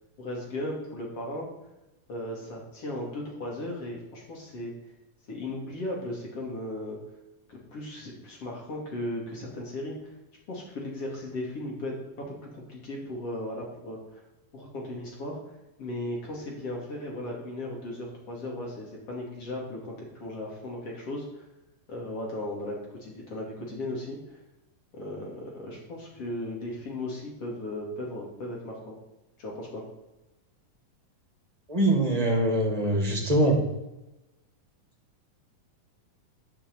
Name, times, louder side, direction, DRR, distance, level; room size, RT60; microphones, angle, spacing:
voice 1, 0.2-1.5 2.1-4.7 5.3-7.0 7.5-10.1 10.5-11.9 12.4-14.2 14.5-15.4 15.8-21.4 21.9-24.4 24.9-29.0 29.4-29.8, left 1 dB, 50° left, -2 dB, 3.4 m, -36 dB
voice 2, 31.7-33.6, right 1 dB, 15° right, -1 dB, 2.0 m, -23 dB
9.9 x 5.9 x 8.1 m, 0.95 s
omnidirectional pair, 3.7 m